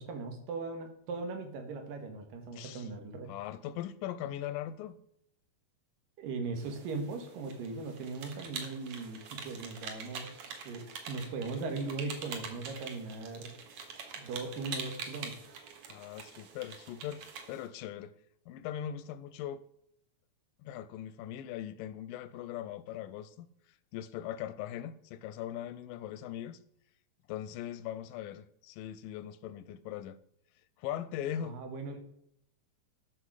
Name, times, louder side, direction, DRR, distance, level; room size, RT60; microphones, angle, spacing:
voice 1, 0.0-3.3 6.2-13.5 14.2-15.6 31.4-32.0, right 3 dB, 85° right, 3.3 m, -39 dB
voice 2, 2.5-2.9 3.3-5.0 15.9-17.2 17.5-18.1 18.5-19.6 20.6-23.5 23.9-26.6 27.3-30.2 30.8-31.6, left 11 dB, 85° left, 2.3 m, -40 dB
sound 1, 6.6-17.7, right 5 dB, 60° right, 2.5 m, -45 dB
12.5 x 6.4 x 4.9 m
omnidirectional pair, 3.9 m